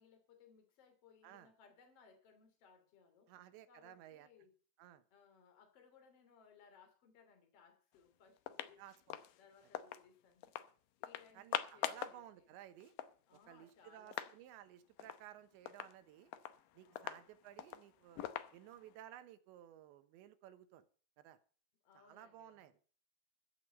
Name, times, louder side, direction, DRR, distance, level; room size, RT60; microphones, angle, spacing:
voice 1, 0.0-3.3 3.7-4.5 5.1-8.8 9.4-10.5 11.0-12.4 13.3-14.3 16.8-17.2 21.8-22.7, left 6 dB, 35° left, 3.3 m, -65 dB
voice 2, 3.3-4.3 4.8-5.0 8.8-9.2 11.3-12.9 13.5-16.3 16.7-18.2 18.5-20.8 21.2-21.4 21.9-22.8, right 12 dB, 80° right, 3.4 m, -56 dB
sound 1, 7.9-8.0 8.4-10.0 10.4-10.7 11.0-12.2 12.5-12.6 12.8-14.4 14.7-14.8 15.0-15.3 15.7-19.0, left 12 dB, 85° left, 1.9 m, -44 dB
14.5 x 7.0 x 8.6 m
omnidirectional pair, 5.1 m